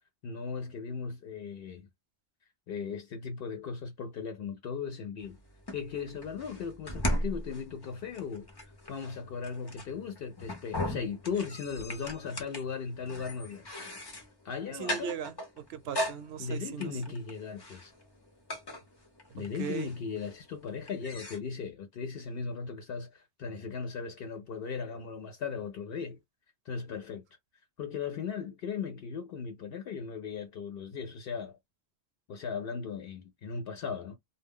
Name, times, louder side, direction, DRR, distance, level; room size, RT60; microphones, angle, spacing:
voice 1, 0.2-1.9 2.7-5.4 5.7-13.6 14.4-15.2 16.4-17.9 19.3-26.2 26.7-27.2 27.8-31.6 32.3-34.2, left 6 dB, 70° left, 0.7 m, -37 dB
sound 1, 5.2-21.4, left 1 dB, 30° left, 0.5 m, -39 dB
voice 2, 14.7-17.2 19.6-19.9, right 8 dB, 80° right, 0.8 m, -38 dB
2.2 x 2.0 x 3.4 m
omnidirectional pair, 1.0 m